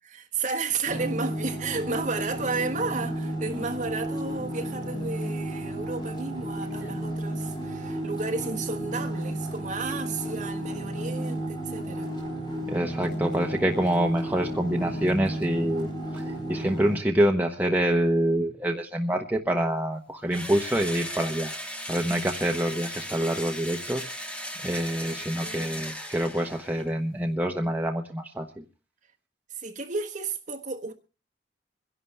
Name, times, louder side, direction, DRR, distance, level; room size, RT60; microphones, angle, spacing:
voice 1, 0.0-12.1 25.1-25.8 29.5-30.9, right 4 dB, 40° right, 1.3 m, -33 dB
sound 1, 0.8-17.0, right 1 dB, 25° left, 5.2 m, -33 dB
voice 2, 12.7-15.9 16.1-21.5 21.9-28.6, right 1 dB, 10° right, 0.9 m, -26 dB
Engine / Drill, 20.3-26.9, equal, 5° left, 1.2 m, -37 dB
25.5 x 11.0 x 3.4 m
head